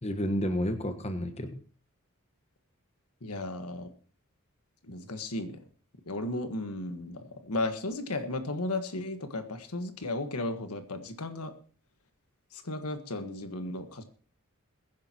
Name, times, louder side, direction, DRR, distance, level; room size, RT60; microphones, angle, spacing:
voice 1, 0.0-1.6, equal, 30° left, 7 dB, 1.3 m, -30 dB
voice 2, 3.2-3.9 4.8-5.6 6.1-11.5 12.5-14.0, left 2 dB, 80° left, 7 dB, 1.5 m, -35 dB
22.0 x 10.0 x 3.0 m, 0.40 s
head